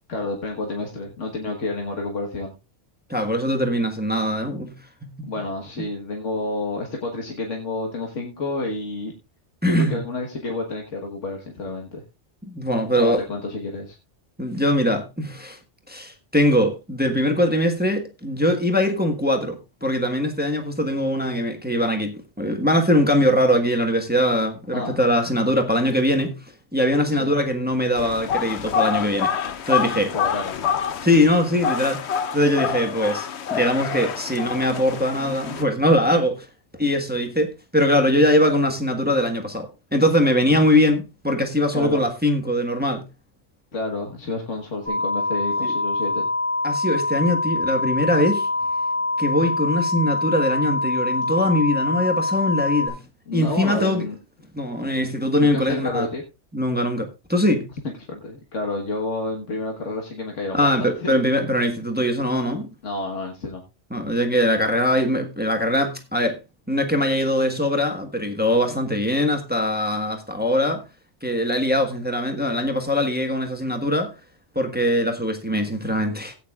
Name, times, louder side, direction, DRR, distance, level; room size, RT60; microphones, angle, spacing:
voice 1, 0.1-2.5 5.2-9.1 9.6-12.0 13.0-14.0 24.7-25.0 27.2-27.3 30.1-30.6 41.7-42.1 43.7-46.3 53.3-54.2 55.4-56.2 58.1-61.2 62.8-63.6, left 2 dB, 85° left, 1.8 m, -29 dB
voice 2, 3.1-4.7 5.0-5.3 9.6-10.0 12.4-13.2 14.4-15.6 15.9-26.4 26.7-29.3 29.7-30.1 31.0-32.1 32.3-36.5 36.8-43.0 45.6-45.7 46.6-48.5 49.2-53.0 53.3-54.0 54.5-56.1 56.5-57.7 60.5-62.7 63.9-66.4 66.7-70.8 71.2-74.1 74.5-76.3, left 1 dB, 10° right, 1.4 m, -21 dB
sound 1, 28.0-35.6, left 8 dB, 70° left, 1.0 m, -27 dB
sound 2, 44.9-52.9, left 2 dB, 25° left, 6.1 m, -24 dB
16.5 x 9.4 x 2.4 m
omnidirectional pair, 1.2 m